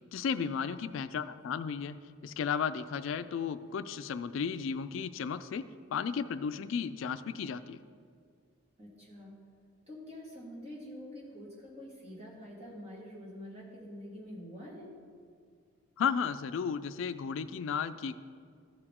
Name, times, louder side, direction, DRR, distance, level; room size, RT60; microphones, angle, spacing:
voice 1, 0.1-2.0 2.2-5.6 5.9-7.8 16.0-18.2, left 6 dB, 75° left, 12 dB, 0.3 m, -34 dB
voice 2, 8.8-9.4 9.9-14.9, equal, 30° right, -5 dB, 2.1 m, -46 dB
14.0 x 4.9 x 3.7 m, 2.1 s
head